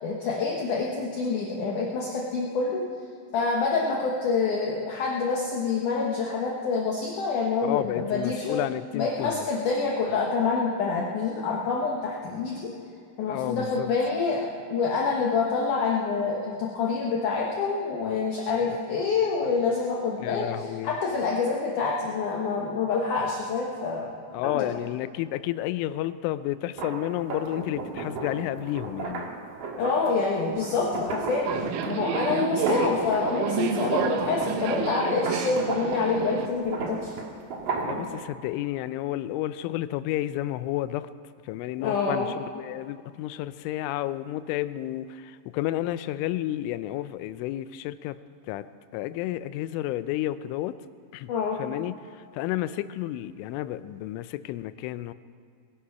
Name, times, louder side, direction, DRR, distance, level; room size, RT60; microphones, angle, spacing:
voice 1, 0.0-2.8 3.3-8.6 8.9-12.7 13.2-24.1 24.4-24.7 29.8-31.5 31.9-37.1 41.8-42.3 51.3-51.6, left 4 dB, 70° left, -3 dB, 2.0 m, -27 dB
voice 2, 7.6-9.5 13.3-13.9 20.2-21.0 24.3-29.3 31.5-31.7 37.8-41.1 41.5-48.2 48.5-48.7 48.9-50.7 51.1-51.3 51.6-51.9 52.3-55.1, left 14 dB, 90° left, 14 dB, 3.1 m, -31 dB
sound 1, 26.7-33.7 34.0-38.2, right 3 dB, 65° right, 1.6 m, -34 dB
Subway metro underground, 31.4-36.5, right 7 dB, 85° right, 3.4 m, -30 dB
21.5 x 9.7 x 5.7 m, 2.2 s
omnidirectional pair, 5.4 m